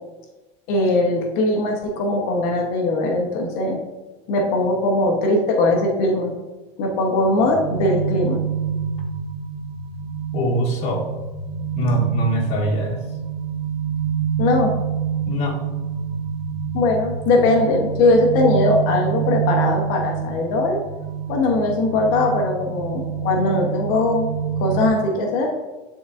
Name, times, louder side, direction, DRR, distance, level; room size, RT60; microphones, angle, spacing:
voice 1, 0.7-3.8 4.3-6.3 6.8-8.4 14.4-14.7 16.7-20.8 21.3-24.3 24.6-25.5, left 2 dB, 60° left, 1 dB, 1.0 m, -20 dB
sound 1, 7.4-24.9, right 7 dB, 30° right, 0.8 m, -27 dB
voice 2, 10.3-11.0 11.8-13.0 15.3-15.6, equal, 45° left, -4 dB, 2.0 m, -22 dB
9.9 x 3.9 x 2.5 m, 1.2 s
supercardioid pair, 130°, 16 cm